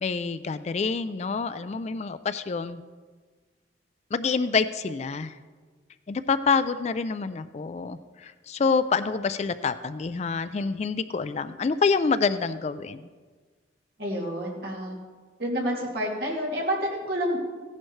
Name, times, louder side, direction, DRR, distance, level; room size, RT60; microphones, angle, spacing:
voice 1, 0.0-2.8 4.1-5.3 6.1-8.0 8.5-13.0, left 5 dB, 35° left, 13 dB, 0.3 m, -27 dB
voice 2, 14.0-15.0 15.4-17.4, equal, 55° right, -3 dB, 2.6 m, -29 dB
16.0 x 10.5 x 3.2 m, 1.5 s
head